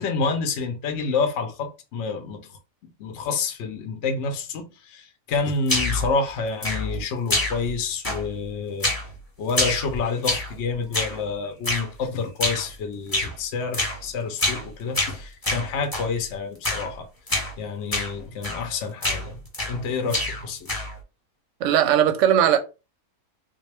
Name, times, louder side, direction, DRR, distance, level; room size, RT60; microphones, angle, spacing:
voice 1, 0.0-8.9 9.4-17.1 17.6-19.4 19.7-20.7, left 4 dB, 60° left, 0.8 m, -28 dB
sound 1, 5.7-6.1 6.6-7.0 7.3-7.8 8.0-8.4 8.8-9.1 9.5-10.6 10.9-11.2 11.6-11.9 12.4-12.7 13.1-13.3 13.7-14.0 14.4-14.7 14.9-16.1 16.6-16.9 17.3-17.5 17.9-18.1 18.4-18.7 19.0-19.8 20.1-21.0, left 2 dB, 15° left, 0.9 m, -26 dB
voice 2, 21.6-22.6, right 10 dB, 65° right, 0.8 m, -18 dB
3.7 x 2.3 x 3.2 m
omnidirectional pair, 1.5 m